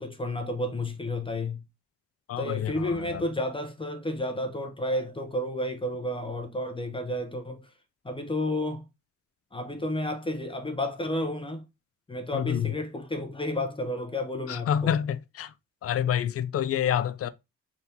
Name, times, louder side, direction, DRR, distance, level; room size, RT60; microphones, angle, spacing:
voice 1, 0.0-1.6 2.4-7.7 8.0-8.9 9.5-11.6 12.1-14.7, left 1 dB, 15° left, 0.8 m, -31 dB
voice 2, 2.3-3.3 12.3-12.8 14.5-15.5 15.8-17.3, left 9 dB, 50° left, 0.5 m, -28 dB
4.2 x 3.5 x 2.8 m
cardioid pair, 90°, 30 cm